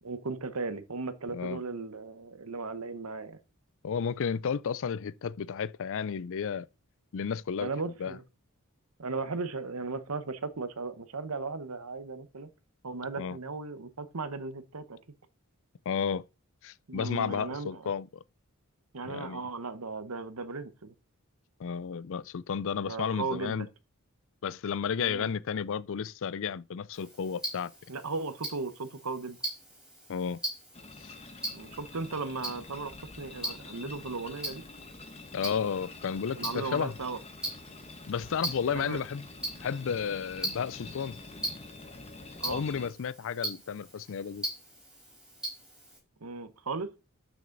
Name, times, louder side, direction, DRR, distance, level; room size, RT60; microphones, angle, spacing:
voice 1, 0.0-3.4 7.6-8.2 9.0-12.5 12.8-15.0 16.9-17.9 18.9-20.9 22.8-23.7 25.0-25.3 27.9-29.4 31.5-34.6 36.3-37.2 38.7-39.0 42.4-42.6 46.2-46.9, right 4 dB, 75° right, 1.1 m, -36 dB
voice 2, 3.8-6.7 7.1-8.2 13.2-13.4 15.9-16.2 16.6-18.1 19.0-19.5 21.6-23.7 24.4-27.7 30.1-30.4 31.0-31.1 35.3-36.9 38.1-39.2 39.6-41.2 42.5-44.4, left 6 dB, 60° left, 0.4 m, -32 dB
Tick-tock, 26.9-46.0, equal, 5° right, 4.5 m, -41 dB
sound 1, 30.7-42.9, left 3 dB, 30° left, 1.2 m, -47 dB
12.5 x 6.2 x 4.0 m
head